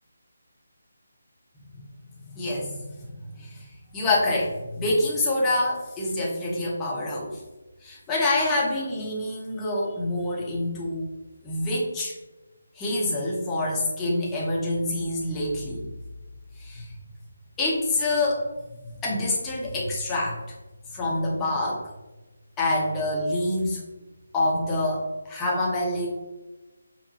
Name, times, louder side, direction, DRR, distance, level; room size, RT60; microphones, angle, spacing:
voice 1, 2.3-3.7 3.9-7.4 7.8-11.1 11.4-12.1 12.8-15.9 16.6-16.9 17.6-18.5 19.0-20.4 20.9-21.8 22.6-23.8 24.3-26.1, left 2 dB, 10° left, -5 dB, 0.8 m, -26 dB
5.4 x 2.1 x 2.8 m, 1.1 s
figure-of-eight pair, 150°, 0 cm